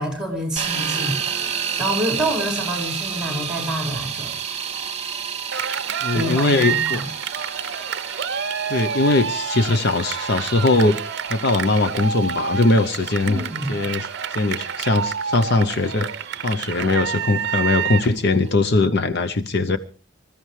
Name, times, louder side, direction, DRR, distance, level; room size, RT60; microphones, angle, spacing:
voice 1, 0.0-4.3 6.1-7.1 13.3-13.7, equal, 5° right, 4.9 m, -27 dB
sound 1, 0.6-18.5, right 7 dB, 30° right, 1.9 m, -32 dB
Cheering, 5.5-18.2, right 7 dB, 55° right, 0.7 m, -28 dB
voice 2, 6.0-7.0 8.7-11.0 11.3-13.4 13.7-16.1 16.4-19.8, left 2 dB, 50° left, 0.7 m, -20 dB
25.5 x 14.5 x 3.2 m
head